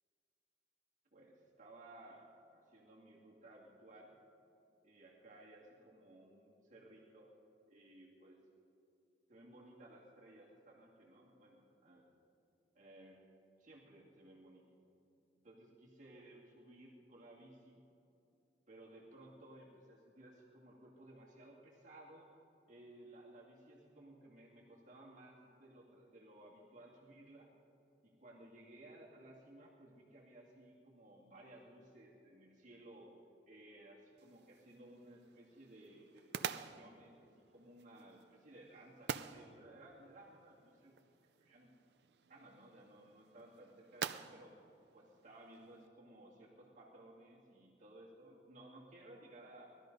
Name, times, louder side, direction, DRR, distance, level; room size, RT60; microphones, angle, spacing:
voice 1, 1.1-4.2 4.8-7.3 7.7-8.4 9.3-12.1 12.7-13.2 13.6-14.7 15.4-17.8 18.7-22.4 22.7-27.5 28.0-33.2 33.5-40.9 41.4-41.7 42.3-44.5 44.9-49.7, right 1 dB, 45° right, -3 dB, 2.2 m, -58 dB
sound 1, 34.2-45.9, right 7 dB, 65° right, 0.5 m, -48 dB
18.5 x 13.0 x 5.3 m, 2.7 s
head